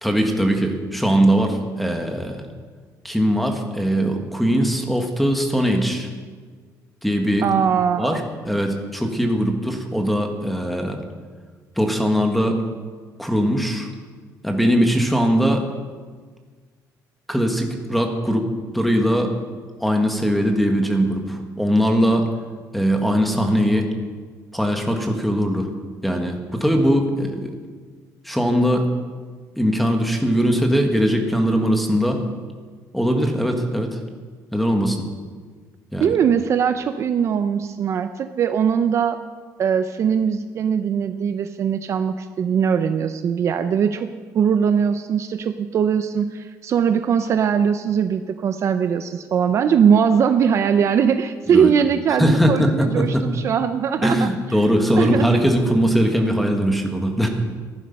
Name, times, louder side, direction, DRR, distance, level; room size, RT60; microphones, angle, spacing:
voice 1, 0.0-2.4 3.0-6.1 7.0-7.6 8.0-11.0 11.8-12.6 13.2-13.9 14.4-15.6 17.3-19.3 19.8-22.3 22.7-23.9 24.5-25.7 26.0-27.5 28.2-28.9 29.6-32.2 32.9-34.0 34.5-35.0 35.9-36.1 51.5-51.7 52.2-53.2 54.0-57.3, equal, ahead, 3 dB, 1.5 m, -20 dB
voice 2, 7.4-8.2 36.0-39.2 39.6-44.1 44.3-54.3 55.0-55.4, right 7 dB, 45° right, 9 dB, 0.5 m, -20 dB
15.0 x 11.0 x 5.3 m, 1.5 s
cardioid pair, 150°, 7 cm